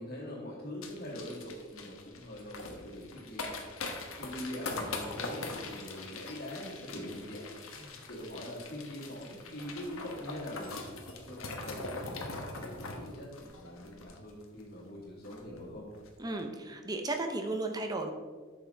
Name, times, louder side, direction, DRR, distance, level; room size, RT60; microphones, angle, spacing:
voice 1, 0.0-3.5 4.2-10.8 11.3-15.9, left 1 dB, 45° left, -4 dB, 2.3 m, -43 dB
sound 1, 0.8-14.6 14.9-15.0 15.2-15.6 15.9-16.1, left 3 dB, 70° left, 1.1 m, -42 dB
voice 2, 16.2-18.1, right 2 dB, 20° right, 4 dB, 0.8 m, -34 dB
8.7 x 6.3 x 3.5 m, 1.5 s
head